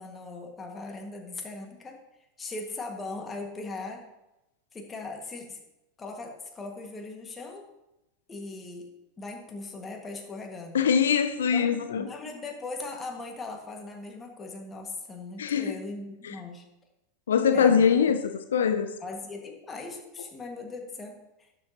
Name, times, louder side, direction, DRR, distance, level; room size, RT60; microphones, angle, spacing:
voice 1, 0.0-2.0 2.4-4.0 4.7-5.6 6.0-7.7 8.3-8.9 9.2-10.8 11.5-16.6 17.5-17.9 19.0-21.5, left 3 dB, 20° left, 2 dB, 1.8 m, -39 dB
voice 2, 10.7-12.1 15.4-15.8 16.2-16.3 17.3-18.9, left 7 dB, 75° left, 9 dB, 0.5 m, -23 dB
12.0 x 6.8 x 2.9 m, 0.92 s
hypercardioid pair, 90°, 0 cm